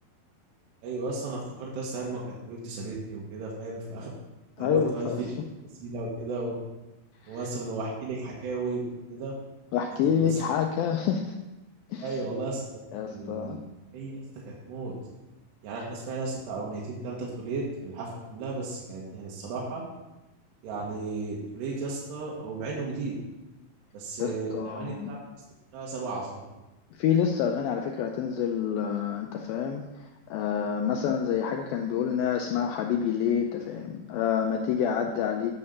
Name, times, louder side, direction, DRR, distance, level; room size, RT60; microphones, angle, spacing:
voice 1, 0.8-4.1 4.6-5.3 5.6-6.6 7.3-8.8 9.1-9.3 10.1-10.4 12.0-12.6 13.1-13.6 13.9-14.2 14.5-14.9 15.6-19.8 20.6-23.1 23.9-25.2 25.7-26.4, right 3 dB, 85° right, -4 dB, 3.5 m, -34 dB
voice 2, 4.6-5.1 7.2-7.4 9.7-11.3 11.9-12.1 12.9-13.6 24.2-25.1 27.0-35.5, left 8 dB, 90° left, 3 dB, 2.1 m, -28 dB
9.8 x 6.6 x 5.5 m, 1.0 s
omnidirectional pair, 4.8 m